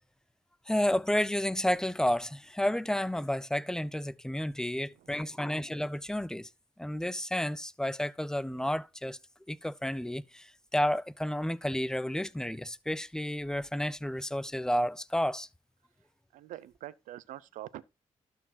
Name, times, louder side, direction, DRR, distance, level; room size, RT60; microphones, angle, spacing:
voice 1, 0.7-6.5 6.8-9.2 9.5-15.5, left 1 dB, 5° left, 0.6 m, -31 dB
voice 2, 4.9-5.3 16.3-17.8, right 13 dB, 90° right, 0.5 m, -45 dB
12.5 x 4.5 x 4.1 m
cardioid pair, 70°, 13 cm